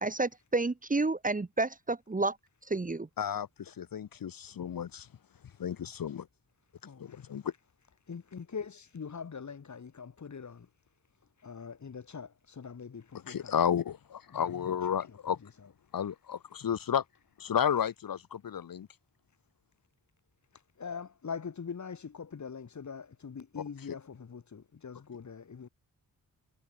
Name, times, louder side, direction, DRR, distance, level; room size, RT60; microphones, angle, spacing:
voice 1, 0.0-2.4 2.7-3.1, right 3 dB, 20° right, 1.5 m, -30 dB
voice 2, 3.2-5.1 5.6-6.3 7.0-7.5 13.3-15.4 15.9-17.0 17.4-18.9, left 8 dB, 65° left, 1.7 m, -32 dB
voice 3, 6.8-7.3 8.1-10.7 11.4-13.6 14.3-15.7 20.5-25.7, left 6 dB, 50° left, 3.4 m, -43 dB
cardioid pair, 80°, 36 cm